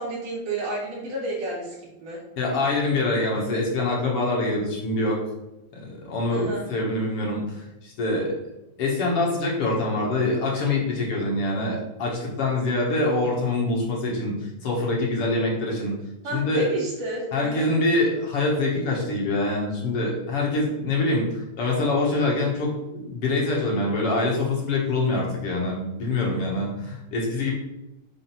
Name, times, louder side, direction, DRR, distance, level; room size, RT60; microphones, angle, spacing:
voice 1, 0.0-2.2 6.3-6.7 16.2-17.7, right 2 dB, 65° right, -3 dB, 3.2 m, -31 dB
voice 2, 2.4-5.2 5.7-8.3 8.8-15.9 16.3-16.7 17.3-27.5, left 2 dB, 55° left, -3 dB, 1.9 m, -25 dB
5.9 x 3.8 x 5.9 m, 0.95 s
omnidirectional pair, 4.2 m